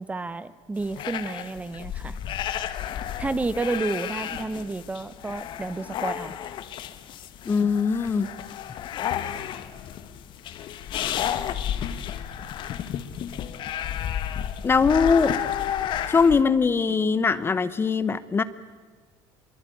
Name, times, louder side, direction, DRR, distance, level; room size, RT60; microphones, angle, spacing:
voice 1, 0.0-2.2 3.2-6.3, right 3 dB, 15° right, 15 dB, 1.0 m, -30 dB
sound 1, 0.8-16.4, left 10 dB, 55° left, 1.7 m, -32 dB
voice 2, 7.5-8.3 14.6-15.4 16.1-18.4, left 5 dB, 25° left, 15 dB, 1.0 m, -21 dB
24.0 x 24.0 x 9.3 m, 1.4 s
cardioid pair, 120°, 10 cm